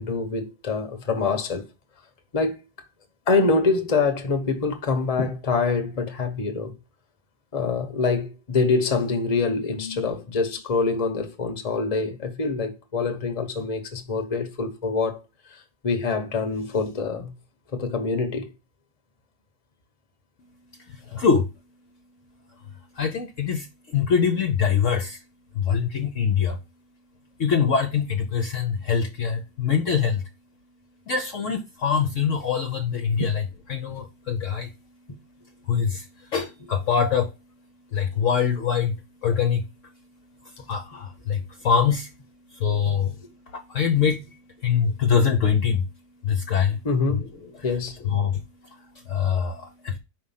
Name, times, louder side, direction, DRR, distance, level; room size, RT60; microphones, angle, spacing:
voice 1, 0.0-1.6 2.3-2.6 3.3-6.7 7.5-15.2 15.8-17.3 17.7-18.5 33.2-33.3 46.8-47.2 47.6-48.0, left 4 dB, 30° left, 0.9 m, -25 dB
voice 2, 20.7-21.5 22.5-25.2 25.5-26.6 27.4-30.2 31.1-33.4 33.7-46.9 47.1-47.2 48.0-50.0, left 7 dB, 60° left, 0.9 m, -25 dB
5.0 x 5.0 x 5.6 m
omnidirectional pair, 1.8 m